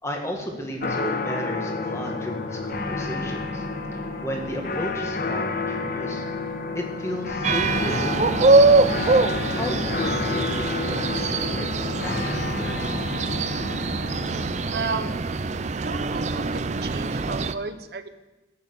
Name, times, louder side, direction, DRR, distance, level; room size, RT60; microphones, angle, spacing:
voice 1, 0.0-3.6 3.9-6.3 6.7-8.5 9.5-13.3, left 1 dB, 15° left, 1 dB, 1.8 m, -34 dB
sound 1, 0.8-14.7, left 3 dB, 50° left, 0.9 m, -30 dB
sound 2, 7.4-17.5, right 3 dB, 40° right, 0.5 m, -23 dB
voice 2, 14.7-15.1 15.9-18.1, right 4 dB, 55° right, 10 dB, 0.9 m, -33 dB
13.5 x 8.7 x 7.0 m, 1.1 s
head